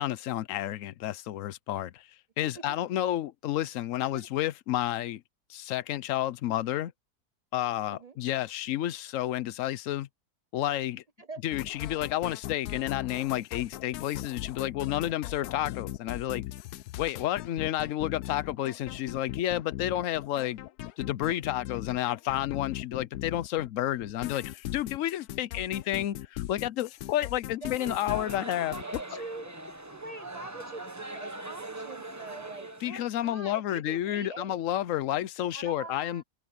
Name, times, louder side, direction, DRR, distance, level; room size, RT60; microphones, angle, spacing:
voice 1, 0.0-2.1 2.4-5.2 5.5-6.9 7.5-10.1 10.5-11.0 11.4-16.4 17.0-20.6 21.0-28.8 32.8-36.2, left 13 dB, 65° left, 1.0 m, -31 dB
sound 1, 11.5-23.7 24.0-29.0, left 14 dB, 90° left, 1.1 m, -39 dB
voice 2, 27.6-28.3 28.6-29.5 29.8-34.6 35.5-36.2, right 3 dB, 80° right, 0.3 m, -44 dB
sound 2, 27.8-32.9, right 2 dB, 15° right, 1.0 m, -41 dB
omnidirectional pair, 1.6 m